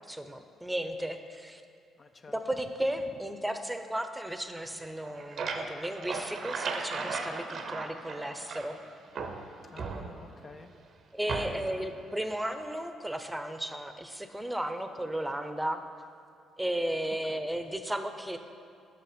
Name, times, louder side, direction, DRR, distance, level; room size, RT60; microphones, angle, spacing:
voice 1, 0.1-1.6 2.3-8.8 11.1-15.8 16.6-18.4, right 1 dB, 10° right, 8 dB, 0.6 m, -34 dB
voice 2, 2.0-2.3 9.7-10.7 11.3-11.8 17.2-17.5, left 4 dB, 40° left, 7 dB, 0.4 m, -50 dB
sound 1, 4.9-8.8 9.1-10.5 11.3-11.8, right 4 dB, 60° right, 0.6 m, -36 dB
6.6 x 5.8 x 5.1 m, 2.5 s
hypercardioid pair, 50°, 0 cm